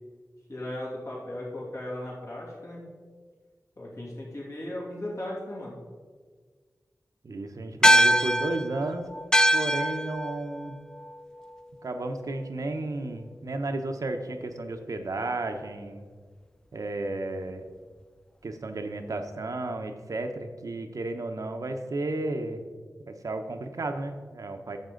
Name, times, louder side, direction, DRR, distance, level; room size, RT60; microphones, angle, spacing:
voice 1, 0.5-2.8 3.8-5.8, left 1 dB, 60° left, -6 dB, 2.8 m, -37 dB
voice 2, 7.2-9.1 9.5-10.8 11.8-16.1 16.7-17.7 18.4-22.6 23.1-24.8, right 2 dB, 70° right, 5 dB, 0.8 m, -33 dB
sound 1, 7.8-12.5, equal, 10° left, 0.3 m, -25 dB
10.5 x 7.3 x 3.8 m, 1.5 s
wide cardioid pair, 70°, 6 cm